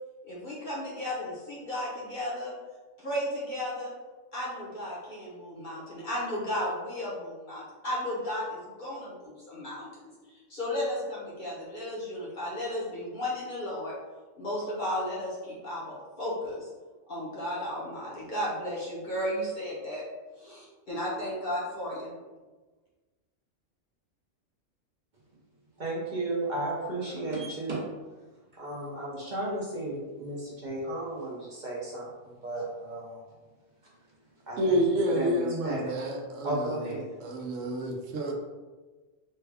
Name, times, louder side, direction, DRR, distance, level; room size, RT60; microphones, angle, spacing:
voice 1, 0.2-2.5 3.0-3.9 4.3-9.9 10.3-14.0 14.4-16.7 17.1-20.0 20.4-22.1, left 1 dB, 45° left, -6 dB, 0.8 m, -34 dB
voice 2, 25.8-27.8 28.5-33.2 34.5-34.8 35.1-36.0 36.4-37.0, right 1 dB, 45° right, -5 dB, 0.7 m, -34 dB
voice 3, 34.6-36.9 37.2-38.3, right 1 dB, 75° right, 1 dB, 1.0 m, -29 dB
3.3 x 2.2 x 3.4 m, 1.3 s
omnidirectional pair, 1.3 m